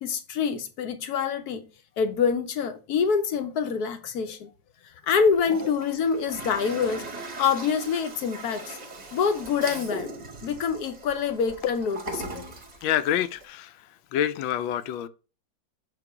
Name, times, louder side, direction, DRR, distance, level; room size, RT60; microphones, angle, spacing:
voice 1, 0.0-1.7 2.0-4.5 5.0-7.1 7.4-8.8 9.1-10.1 10.4-12.5, left 6 dB, 65° left, 1.0 m, -26 dB
Toilet flush, 5.3-13.4, right 2 dB, 30° right, 0.9 m, -39 dB
voice 2, 12.8-13.9 14.1-15.1, left 10 dB, 85° left, 1.3 m, -27 dB
5.9 x 3.7 x 4.8 m
omnidirectional pair, 2.1 m